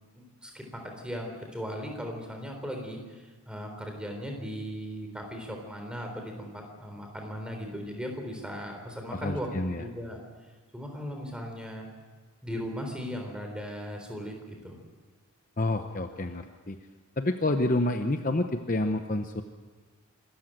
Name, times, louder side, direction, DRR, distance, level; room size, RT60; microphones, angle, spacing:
voice 1, 0.2-9.5 9.7-10.2 10.7-11.9 12.4-14.8, equal, 5° right, 3 dB, 3.8 m, -38 dB
voice 2, 9.1-9.9 15.6-16.8 17.2-19.4, left 2 dB, 35° left, 7 dB, 0.8 m, -28 dB
25.0 x 14.0 x 9.0 m, 1.5 s
head